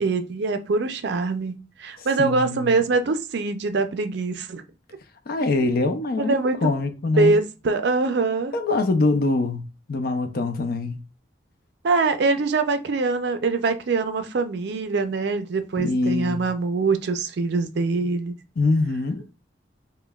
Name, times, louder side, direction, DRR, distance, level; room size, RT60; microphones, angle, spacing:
voice 1, 0.0-4.6 5.5-5.7 6.2-6.7 7.2-8.5 11.8-18.4, right 3 dB, 60° right, 0.4 m, -23 dB
voice 2, 2.0-2.8 5.3-7.3 8.5-9.6 9.9-11.0 15.8-16.4 18.6-19.2, left 3 dB, 55° left, 0.5 m, -24 dB
5.1 x 2.2 x 2.3 m
head